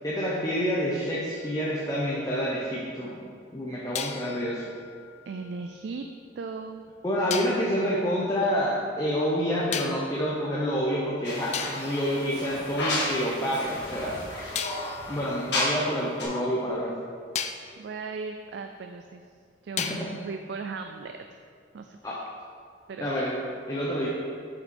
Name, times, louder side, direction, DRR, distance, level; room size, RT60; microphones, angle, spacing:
voice 1, 0.0-3.1 3.5-4.7 7.0-14.2 15.1-16.9 19.8-20.1 22.0-22.2 23.0-23.4 23.7-24.1, equal, 20° left, -6 dB, 0.8 m, -28 dB
sound 1, 1.3-2.8 3.9-6.1 7.3-7.7 9.7-10.3 11.0-11.1 11.5-13.2 14.5-16.7 17.3-17.8 19.8-20.3, left 8 dB, 35° left, 0.3 m, -38 dB
voice 2, 5.3-6.1 6.4-6.8 17.8-19.2 19.6-21.4 21.7-22.0 22.9-23.1, right 4 dB, 65° right, 6 dB, 0.3 m, -37 dB
sound 2, 11.2-15.9 16.2-16.3, left 1 dB, 65° left, 1.8 m, -32 dB
6.7 x 5.7 x 4.3 m, 2.2 s
head